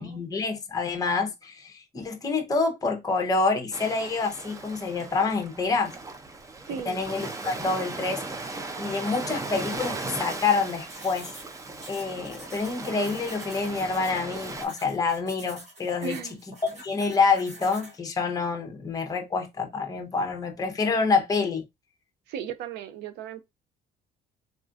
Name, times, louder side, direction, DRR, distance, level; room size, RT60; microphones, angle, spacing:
voice 1, 0.0-5.9 6.9-8.2 8.8-11.3 11.9-16.2 16.6-21.6, left 4 dB, 20° left, 0.7 m, -27 dB
Ocean, 3.7-14.7, right 3 dB, 20° right, 0.5 m, -37 dB
voice 2, 6.7-7.0 16.0-16.4 22.3-23.4, right 8 dB, 80° right, 0.5 m, -36 dB
sound 1, 10.9-18.0, right 1 dB, 40° right, 1.6 m, -47 dB
3.7 x 2.3 x 2.4 m
cardioid pair, 110°, 17 cm